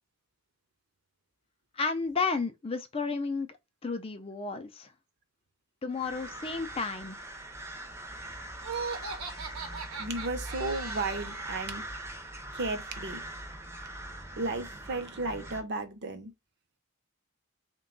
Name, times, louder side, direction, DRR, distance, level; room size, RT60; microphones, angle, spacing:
voice 1, 1.7-3.6 3.8-4.9 5.8-7.2, left 4 dB, 25° left, 0.4 m, -32 dB
sound 1, 5.9-15.6, right 1 dB, 10° right, 0.6 m, -41 dB
Laughter, 8.6-11.4, right 4 dB, 70° right, 0.9 m, -38 dB
voice 2, 10.0-11.8 12.5-13.2 14.4-16.3, right 2 dB, 50° right, 0.7 m, -34 dB
3.9 x 2.3 x 3.7 m
head